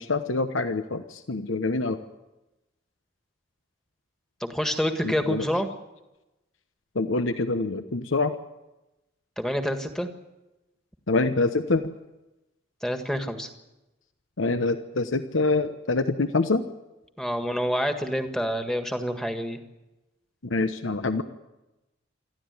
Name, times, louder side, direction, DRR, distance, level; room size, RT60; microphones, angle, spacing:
voice 1, 0.0-2.0 5.0-5.4 6.9-8.3 11.1-11.8 14.4-16.6 20.4-21.2, left 3 dB, 85° left, 9 dB, 1.0 m, -25 dB
voice 2, 4.4-5.7 9.4-10.1 12.8-13.5 17.2-19.6, equal, 5° left, 6 dB, 1.7 m, -27 dB
26.5 x 14.0 x 9.6 m, 1.0 s
head